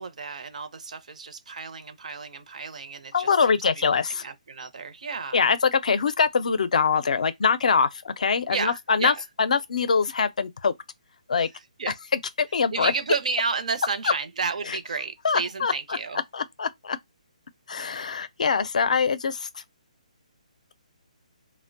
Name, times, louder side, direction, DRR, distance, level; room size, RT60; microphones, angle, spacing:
voice 1, 0.0-3.3 3.8-3.9 4.2-5.5 8.5-9.2 11.8-11.9 12.7-16.2, right 5 dB, 65° right, 0.5 m, -31 dB
voice 2, 3.1-4.3 5.3-10.7 11.3-11.5 12.4-12.9 14.0-14.1 14.7-14.8 15.2-16.0 16.3-17.0 17.7-19.6, left 5 dB, 65° left, 0.4 m, -23 dB
2.5 x 2.0 x 2.5 m
hypercardioid pair, 170°, 4 cm